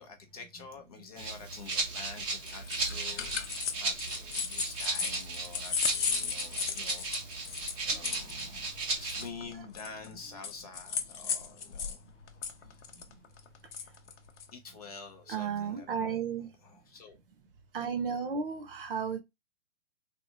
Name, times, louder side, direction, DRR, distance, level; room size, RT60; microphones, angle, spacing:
voice 1, 0.0-7.1 7.8-12.0 12.7-12.8 14.5-16.2 16.6-17.2, left 5 dB, 30° left, 0.5 m, -48 dB
Rattle (instrument), 1.2-9.3, right 3 dB, 15° right, 0.6 m, -36 dB
sound 1, 2.5-12.0 12.3-14.5, left 6 dB, 60° left, 0.7 m, -35 dB
voice 2, 5.8-6.3 7.9-8.5 12.6-12.7 13.1-13.2 15.3-16.5 17.7-19.2, right 6 dB, 45° right, 0.8 m, -35 dB
3.3 x 2.3 x 2.7 m
hypercardioid pair, 135°, 39 cm